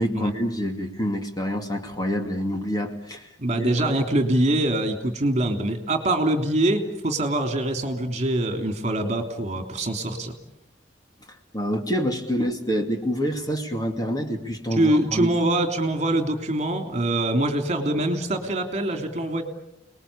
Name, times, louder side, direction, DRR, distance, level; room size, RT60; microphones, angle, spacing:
voice 1, 0.0-3.7 11.5-15.3, equal, 20° left, 3 dB, 2.5 m, -27 dB
voice 2, 3.4-10.3 14.7-19.4, right 1 dB, 40° right, 5 dB, 3.1 m, -24 dB
30.0 x 20.5 x 8.6 m, 0.84 s
head